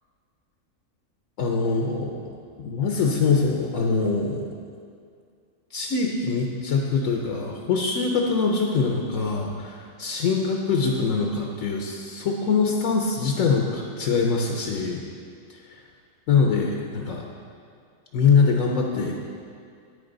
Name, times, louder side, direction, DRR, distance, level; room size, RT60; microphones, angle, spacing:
voice 1, 1.4-2.2 2.6-4.5 5.7-15.0 16.3-17.3 18.1-19.1, left 4 dB, 75° left, 0 dB, 1.2 m, -23 dB
9.6 x 8.7 x 3.9 m, 2.3 s
omnidirectional pair, 1.4 m